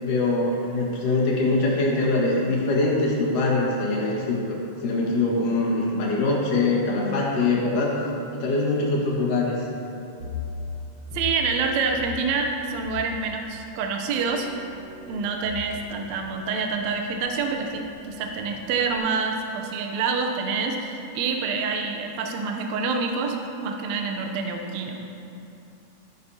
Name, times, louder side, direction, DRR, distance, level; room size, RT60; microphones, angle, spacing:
voice 1, 0.0-8.0 8.3-9.6, left 2 dB, 80° left, -4 dB, 3.2 m, -23 dB
sound 1, 10.1-19.0, left 4 dB, 90° right, 1.0 m, -40 dB
voice 2, 11.1-14.5 15.1-25.0, right 4 dB, 70° right, 3 dB, 1.8 m, -27 dB
13.5 x 10.0 x 2.8 m, 2.7 s
omnidirectional pair, 3.7 m